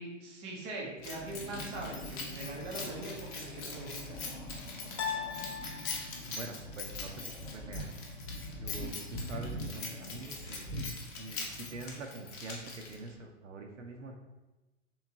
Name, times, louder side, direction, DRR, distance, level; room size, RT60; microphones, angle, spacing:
voice 1, 0.0-4.2, right 2 dB, 15° right, -1 dB, 0.4 m, -42 dB
Keys jangling, 1.0-13.2, left 4 dB, 30° left, 0.7 m, -43 dB
sound 1, 1.0-11.9, equal, 5° left, 1.0 m, -44 dB
sound 2, 2.4-3.1 5.0-6.4, left 7 dB, 70° left, 0.6 m, -40 dB
voice 2, 5.9-7.9 8.6-14.2, right 3 dB, 80° right, 3 dB, 0.6 m, -45 dB
3.4 x 3.0 x 2.7 m, 1.1 s
figure-of-eight pair, 110°, 37 cm